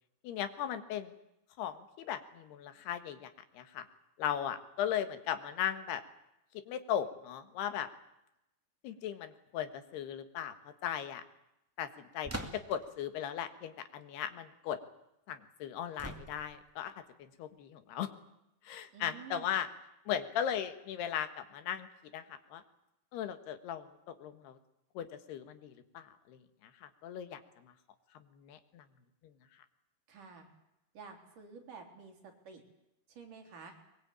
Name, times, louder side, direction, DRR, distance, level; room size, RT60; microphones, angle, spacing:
voice 1, 0.2-1.1 1.6-3.9 4.2-6.0 6.7-7.9 8.8-10.5 10.8-11.2 11.8-14.8 15.3-16.9 17.2-18.1 18.7-19.7 20.1-21.9 22.1-22.6 23.1-23.9 24.2-24.6 25.0-26.4 26.8-27.4 28.4-28.9, left 9 dB, 85° left, 10 dB, 3.6 m, -37 dB
sound 1, 12.2-12.9 16.0-16.7, right 1 dB, 10° right, 1.0 m, -42 dB
voice 2, 18.9-19.6 30.1-30.5 30.9-32.6 33.1-33.8, right 5 dB, 55° right, 3 dB, 4.9 m, -50 dB
22.5 x 22.0 x 8.8 m, 0.87 s
omnidirectional pair, 4.5 m